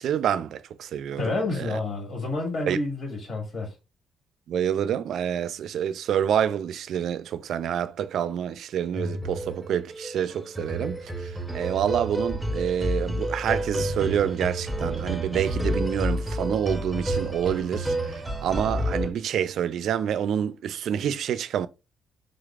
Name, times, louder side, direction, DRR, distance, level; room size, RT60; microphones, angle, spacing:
voice 1, 0.0-1.3 2.7-2.8 4.5-21.7, right 9 dB, 70° right, 0.3 m, -27 dB
voice 2, 1.2-3.7, left 2 dB, 50° left, 2.0 m, -29 dB
sound 1, 8.9-19.1, right 1 dB, 5° right, 0.7 m, -30 dB
3.7 x 3.2 x 2.4 m
cardioid pair, 90°, 0 cm